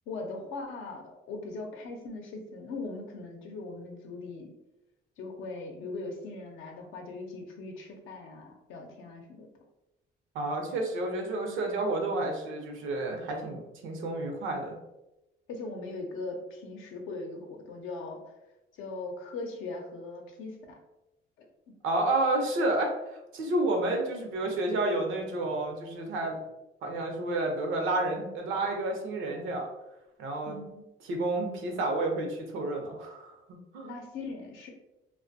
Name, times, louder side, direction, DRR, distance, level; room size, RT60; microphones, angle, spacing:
voice 1, 0.1-4.5 5.2-9.5 15.5-18.2 18.8-20.8 21.4-21.7 30.4-30.8 33.8-34.7, left 3 dB, 85° left, 2 dB, 0.6 m, -40 dB
voice 2, 10.3-14.8 21.8-22.9 23.3-26.4 26.8-29.7 30.2-30.6 31.0-33.3 33.7-33.9, right 2 dB, 85° right, 2 dB, 0.6 m, -30 dB
2.4 x 2.1 x 2.5 m, 0.95 s
cardioid pair, 90°, 20 cm